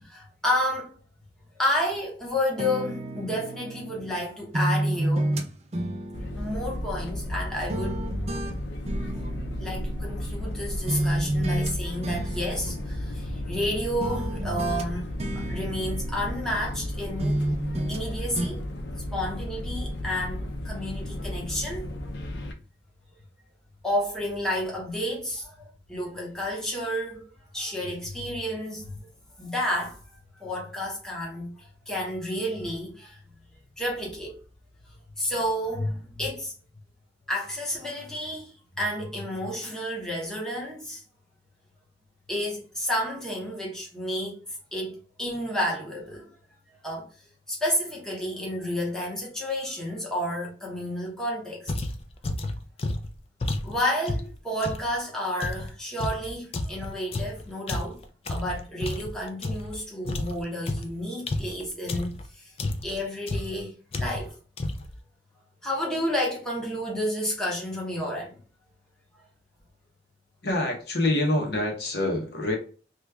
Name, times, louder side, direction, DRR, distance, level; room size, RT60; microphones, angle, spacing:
voice 1, 0.0-1.0 1.6-5.3 6.4-8.0 9.6-17.4 17.9-18.6 19.1-21.9 23.8-27.2 27.5-29.0 29.4-30.0 30.3-33.2 33.8-34.4 35.2-36.5 37.3-41.0 42.3-44.4 44.7-46.3 46.8-47.1 47.5-51.7 53.6-58.0 58.3-62.5 62.8-64.3 65.6-68.4, equal, 5° left, 0.9 m, -31 dB
sound 1, 2.6-4.2 4.5-7.4 7.7-10.6 10.9-11.7 12.0-13.7 14.0-16.9 17.2-18.1 18.4-18.5, right 1 dB, 35° right, 0.4 m, -31 dB
sound 2, 6.1-22.5, left 1 dB, 80° left, 0.6 m, -34 dB
sound 3, 51.7-54.9 55.4-59.8 60.0-62.3 62.6-63.0 63.3-63.6 63.9-64.3 64.6-65.0, left 2 dB, 35° left, 0.3 m, -31 dB
voice 2, 70.4-72.6, left 1 dB, 60° left, 0.9 m, -26 dB
3.0 x 2.3 x 3.3 m
head